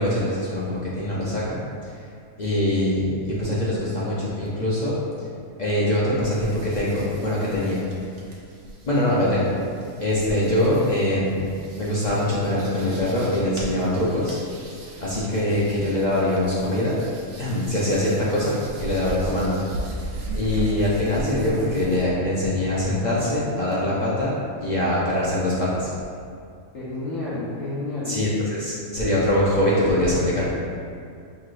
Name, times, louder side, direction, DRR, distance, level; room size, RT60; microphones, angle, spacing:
voice 1, 0.0-1.6 1.8-1.9 2.4-5.0 5.6-7.8 8.8-9.5 10.0-11.5 11.8-14.4 15.0-17.0 17.4-19.6 20.3-24.3 24.6-25.9 28.1-30.4, left 1 dB, 45° left, -8 dB, 0.6 m, -23 dB
sound 1, 6.3-22.0, right 1 dB, 80° right, 1.1 m, -37 dB
voice 2, 26.7-28.2, left 2 dB, 75° left, -10 dB, 1.3 m, -30 dB
6.0 x 3.2 x 2.5 m, 2.3 s
omnidirectional pair, 1.4 m